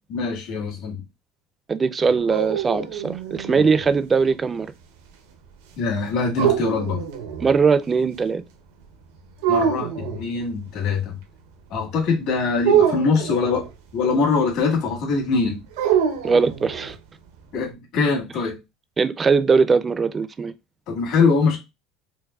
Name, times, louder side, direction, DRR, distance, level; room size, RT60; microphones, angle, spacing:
voice 1, 0.1-1.0 3.6-3.7 5.8-7.0 9.5-11.1 11.7-13.7 13.9-15.6 17.5-18.6 20.9-21.6, left 4 dB, 65° left, 1.7 m, -23 dB
voice 2, 1.7-4.7 7.4-8.4 16.2-17.0 19.0-20.5, right 5 dB, 25° right, 0.4 m, -20 dB
sound 1, 2.0-3.9 6.4-7.6 9.4-10.2 12.6-13.7 15.8-17.0, right 8 dB, 90° right, 0.7 m, -24 dB
4.6 x 2.1 x 2.3 m
supercardioid pair, 115°, 0 cm